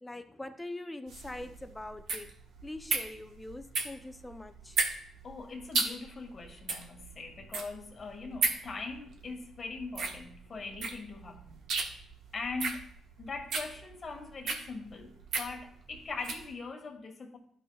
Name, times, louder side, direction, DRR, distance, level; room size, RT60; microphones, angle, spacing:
voice 1, 0.0-2.3 2.6-4.8, left 1 dB, 10° left, 8 dB, 0.6 m, -43 dB
sound 1, 1.1-16.5, right 4 dB, 70° right, 1.1 m, -35 dB
voice 2, 5.2-11.7 12.3-12.9 13.2-17.4, left 4 dB, 40° left, 3 dB, 1.5 m, -41 dB
11.5 x 5.3 x 2.3 m, 0.65 s
cardioid pair, 90°, 0 cm